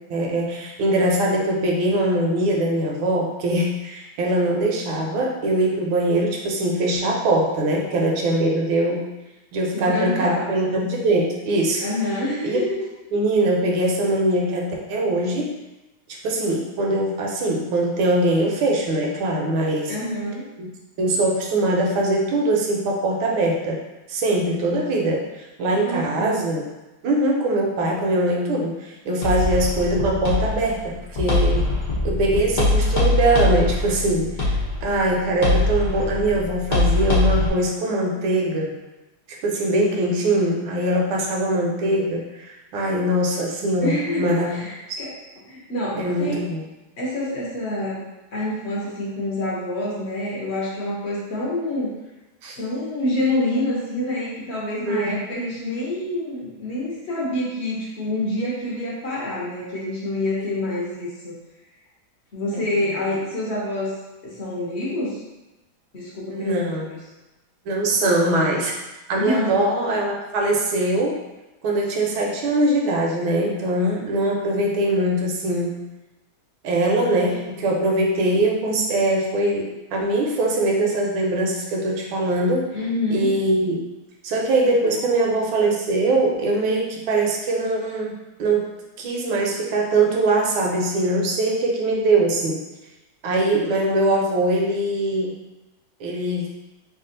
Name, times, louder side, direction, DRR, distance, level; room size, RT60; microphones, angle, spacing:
voice 1, 0.1-9.0 9.5-11.9 12.4-12.6 13.1-15.6 16.2-20.0 20.6-20.7 21.0-23.8 24.1-25.2 25.6-26.6 27.0-31.7 32.0-34.5 34.8-38.7 39.3-44.5 44.9-45.0 46.0-46.6 52.4-52.6 54.8-55.2 66.3-66.9 67.7-68.8 69.1-71.2 71.6-75.8 76.6-82.7 83.1-83.8 84.2-88.1 88.4-88.7 89.0-92.6 93.2-95.3 96.0-96.5, right 1 dB, 80° right, -1 dB, 1.5 m, -22 dB
voice 2, 9.7-10.5 11.8-12.9 19.9-20.5 25.6-26.4 43.8-45.1 45.5-46.4 47.0-51.9 52.6-61.3 62.3-64.0 64.2-65.2 65.9-67.0 68.0-68.3 69.2-69.6 82.7-83.3, left 1 dB, 50° left, -6 dB, 0.8 m, -27 dB
sound 1, 29.2-37.5, left 2 dB, 75° left, 0.4 m, -22 dB
3.4 x 2.4 x 3.8 m, 1.0 s
omnidirectional pair, 2.2 m